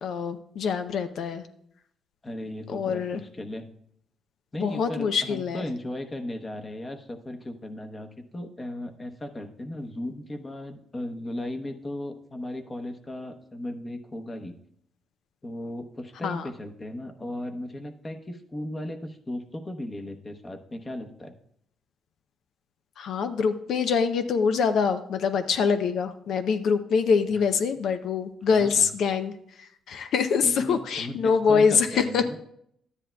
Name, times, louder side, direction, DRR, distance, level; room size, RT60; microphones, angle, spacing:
voice 1, 0.0-1.5 2.7-3.2 4.6-5.7 16.2-16.5 23.0-32.2, left 6 dB, 70° left, 9 dB, 0.6 m, -25 dB
voice 2, 2.2-3.7 4.5-14.5 15.4-21.3 27.3-27.4 28.5-28.9 30.4-32.4, left 1 dB, 25° left, 5 dB, 0.9 m, -36 dB
12.0 x 9.8 x 2.3 m, 0.71 s
cardioid pair, 90°, 0 cm